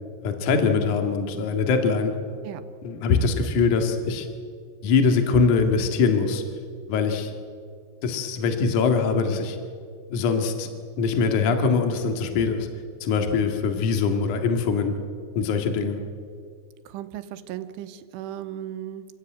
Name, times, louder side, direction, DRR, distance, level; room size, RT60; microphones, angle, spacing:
voice 1, 0.2-2.1 2.8-4.3 4.8-6.4 6.9-7.3 8.0-9.6 10.1-10.7 11.0-12.7 13.0-14.9 15.4-16.0, left 5 dB, 50° left, 5 dB, 2.9 m, -22 dB
voice 2, 16.9-19.1, right 11 dB, 85° right, 10 dB, 3.4 m, -36 dB
27.5 x 16.0 x 9.2 m, 2.1 s
omnidirectional pair, 5.5 m